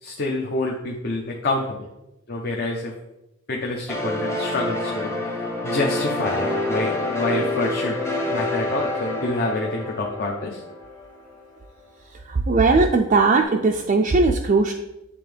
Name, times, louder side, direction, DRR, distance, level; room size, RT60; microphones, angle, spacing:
voice 1, 0.0-1.8 2.3-2.9 3.5-5.1 5.6-8.0 8.3-10.6, left 2 dB, 50° left, -1 dB, 0.7 m, -27 dB
sound 1, 3.9-11.4, left 2 dB, 15° left, 0.8 m, -27 dB
voice 2, 12.1-14.7, right 3 dB, 35° right, 2 dB, 0.4 m, -19 dB
8.5 x 3.4 x 3.4 m, 0.91 s
head